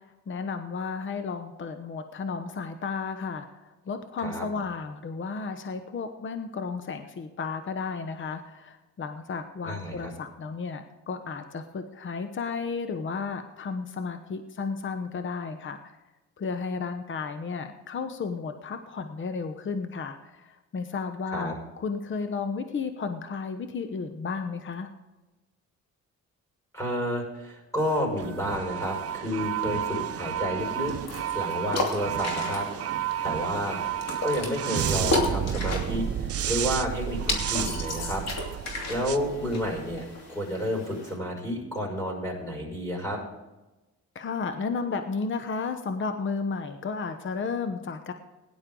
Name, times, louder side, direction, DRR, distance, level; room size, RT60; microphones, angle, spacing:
voice 1, 0.3-15.9 16.4-24.9 44.1-48.1, left 5 dB, 40° left, 8 dB, 1.0 m, -33 dB
voice 2, 9.6-10.1 21.3-21.5 26.7-32.7 33.2-33.8 34.2-38.2 38.9-43.2, equal, 10° left, -3 dB, 5.7 m, -31 dB
sound 1, 27.8-40.2, right 10 dB, 50° right, 0.7 m, -31 dB
sound 2, 30.6-41.2, left 2 dB, 60° left, 2.9 m, -34 dB
17.0 x 11.0 x 3.8 m, 1.1 s
cardioid pair, 90°, 30 cm